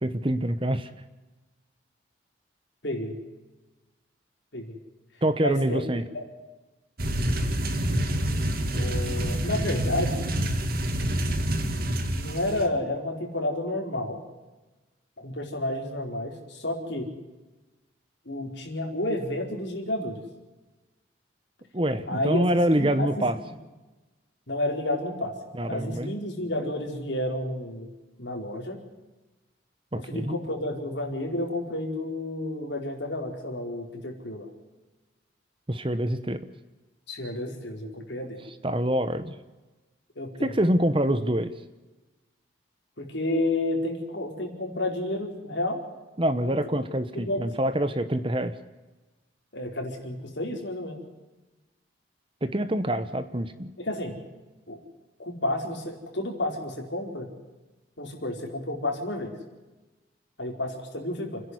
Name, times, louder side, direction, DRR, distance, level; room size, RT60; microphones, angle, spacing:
voice 1, 0.0-0.9 5.2-6.0 21.7-23.4 25.5-26.1 29.9-30.3 35.7-36.5 38.6-39.3 40.4-41.5 46.2-48.6 52.4-53.7, right 1 dB, 25° right, 12 dB, 1.0 m, -25 dB
voice 2, 2.8-3.2 4.5-4.8 5.4-5.8 6.1-6.2 8.7-10.2 12.1-14.2 15.2-17.1 18.2-20.2 22.1-22.4 22.8-23.3 24.5-25.3 25.7-27.9 28.2-28.8 30.0-34.5 37.1-38.4 40.2-40.5 43.0-45.8 46.4-46.6 47.1-47.4 49.5-51.0 53.8-54.1 54.7-54.8 55.2-57.3 58.0-59.3 60.4-61.4, left 1 dB, 65° left, 1 dB, 4.8 m, -31 dB
sound 1, 7.0-12.7, right 1 dB, 50° right, 2.3 m, -27 dB
29.5 x 11.0 x 9.7 m, 1.2 s
head